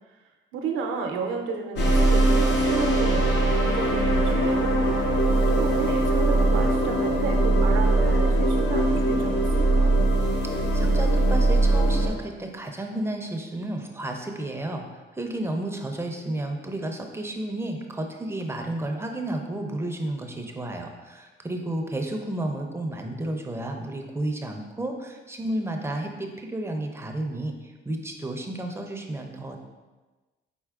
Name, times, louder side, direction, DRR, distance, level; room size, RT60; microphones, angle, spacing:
voice 1, 0.5-4.8 5.5-9.9, right 4 dB, 80° right, 3 dB, 0.6 m, -33 dB
sound 1, 1.8-12.1, right 2 dB, 60° left, 0.8 m, -21 dB
voice 2, 10.4-29.6, right 1 dB, 15° right, 3 dB, 0.5 m, -32 dB
4.4 x 4.2 x 2.4 m, 1.2 s
cardioid pair, 90°, 20 cm